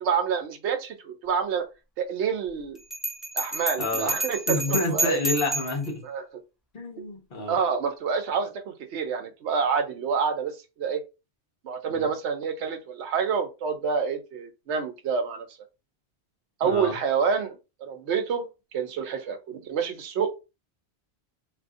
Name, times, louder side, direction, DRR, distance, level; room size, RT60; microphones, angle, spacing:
voice 1, 0.0-1.6 2.0-2.8 3.3-5.3 6.0-6.2 7.5-11.0 11.6-15.5 16.6-20.4, right 6 dB, 80° right, 1.0 m, -28 dB
Bell, 2.9-5.9, right 2 dB, ahead, 0.4 m, -29 dB
voice 2, 3.8-4.2 4.5-6.0 6.7-7.6 11.9-12.1 16.6-17.0, left 2 dB, 55° left, 1.1 m, -29 dB
2.7 x 2.6 x 3.5 m
omnidirectional pair, 1.1 m